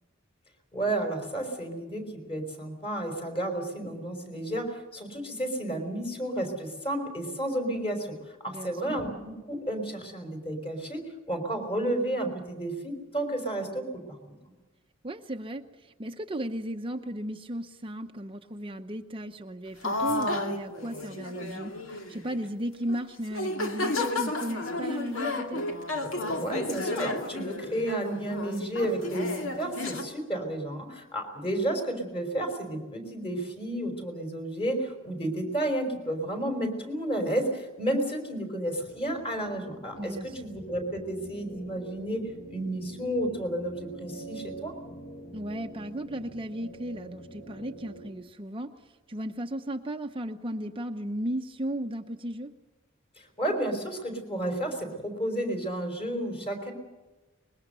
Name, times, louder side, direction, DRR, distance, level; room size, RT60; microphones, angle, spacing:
voice 1, 0.7-8.1 8.4-14.3 26.0-42.2 42.5-44.7 53.2-56.7, right 1 dB, 30° left, 4 dB, 4.6 m, -32 dB
voice 2, 8.5-9.0 15.0-25.6 40.0-40.4 45.3-48.7 49.1-52.5, right 1 dB, 25° right, 5 dB, 0.7 m, -35 dB
sound 1, 19.8-22.4 22.9-23.0 23.3-30.0, left 2 dB, 75° left, 2.3 m, -32 dB
sound 2, 38.7-48.1, right 1 dB, 50° left, 6.3 m, -46 dB
24.0 x 21.0 x 6.8 m, 1.2 s
head